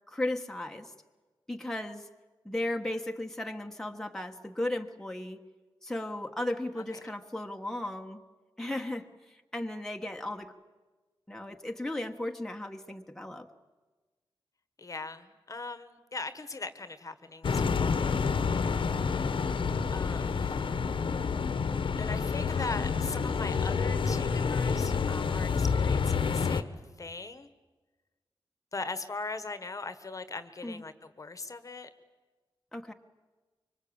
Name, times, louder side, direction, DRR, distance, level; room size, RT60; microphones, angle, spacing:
voice 1, 0.1-0.9 1.5-2.1 2.4-5.4 5.8-8.2 8.6-10.5 11.3-13.5 30.6-30.8 32.7-32.9, left 1 dB, 5° left, 3 dB, 1.3 m, -35 dB
voice 2, 14.8-18.0 19.9-20.6 22.0-27.5 28.7-31.9, left 3 dB, 40° left, 11 dB, 1.3 m, -40 dB
sound 1, 17.4-26.6, left 5 dB, 70° left, 1.3 m, -28 dB
25.5 x 24.5 x 8.7 m, 1.3 s
wide cardioid pair, 150°, 9 cm